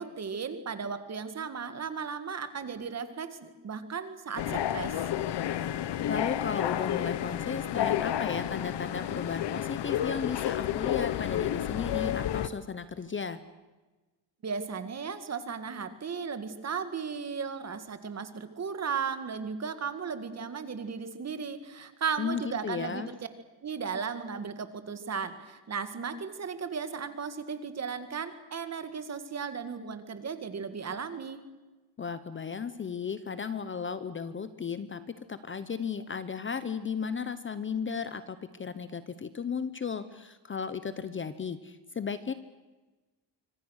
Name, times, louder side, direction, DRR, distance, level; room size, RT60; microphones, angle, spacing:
voice 1, 0.0-5.0 14.4-23.2 23.6-31.4, right 6 dB, 35° right, 10 dB, 1.9 m, -36 dB
sound 1, 4.4-12.5, left 11 dB, 60° left, 1.2 m, -31 dB
voice 2, 6.1-13.4 22.2-23.1 32.0-42.3, left 6 dB, 25° left, 13 dB, 0.8 m, -35 dB
25.5 x 25.0 x 6.4 m, 1.2 s
cardioid pair, 170°, 47 cm